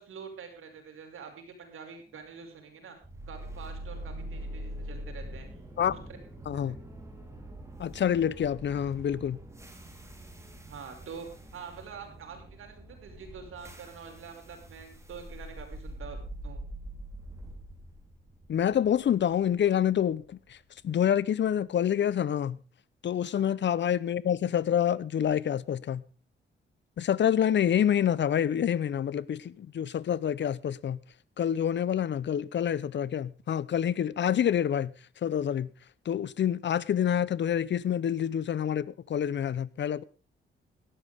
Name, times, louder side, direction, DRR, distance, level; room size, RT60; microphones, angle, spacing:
voice 1, 0.0-3.0 3.3-5.5 5.9-6.0 6.5-6.8 10.6-11.3 11.5-16.2 16.4-16.6 23.3-23.5, right 6 dB, 85° right, 5.6 m, -46 dB
sound 1, 2.1-8.0, left 1 dB, 20° left, 4.9 m, -59 dB
sound 2, 3.0-21.1, right 1 dB, 15° right, 3.8 m, -44 dB
voice 2, 7.8-9.4 18.5-20.6 20.8-22.6 23.0-26.0 27.0-31.0 31.4-34.9 35.2-35.7 36.1-40.0, left 9 dB, 60° left, 0.8 m, -27 dB
17.5 x 13.5 x 3.6 m
cardioid pair, 110°, 21 cm